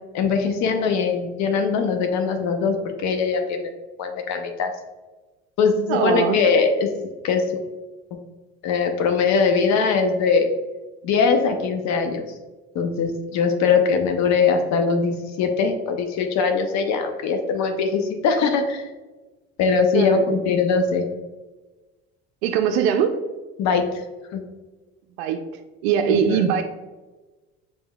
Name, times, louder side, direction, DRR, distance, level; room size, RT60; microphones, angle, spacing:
voice 1, 0.1-2.8 3.0-3.7 4.0-4.7 5.6-6.9 7.2-7.6 8.6-10.5 11.0-12.2 12.7-18.9 19.6-21.1 23.6-23.9 24.3-24.4 26.1-26.5, left 5 dB, 60° left, 6 dB, 0.7 m, -21 dB
voice 2, 5.9-6.4 19.9-20.2 22.4-23.1 25.2-25.4 25.8-26.6, right 8 dB, 90° right, 6 dB, 0.5 m, -21 dB
5.4 x 4.2 x 2.3 m, 1.2 s
supercardioid pair, 90°, 31 cm